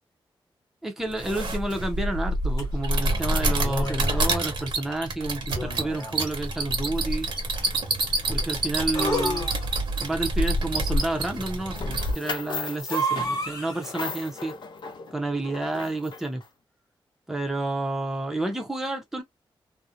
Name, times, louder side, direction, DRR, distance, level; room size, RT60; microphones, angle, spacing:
voice 1, 0.8-7.3 8.3-9.5 10.0-14.5 15.1-16.4 17.3-19.2, right 2 dB, 5° right, 0.5 m, -30 dB
sound 1, 1.1-12.1, right 1 dB, 60° right, 0.9 m, -27 dB
sound 2, 2.6-2.7 3.6-4.3 5.5-6.3 8.9-10.0 12.9-14.0, equal, 40° left, 1.0 m, -30 dB
sound 3, 11.7-16.4, left 4 dB, 55° left, 0.7 m, -37 dB
2.4 x 2.1 x 2.7 m
wide cardioid pair, 175°, 9 cm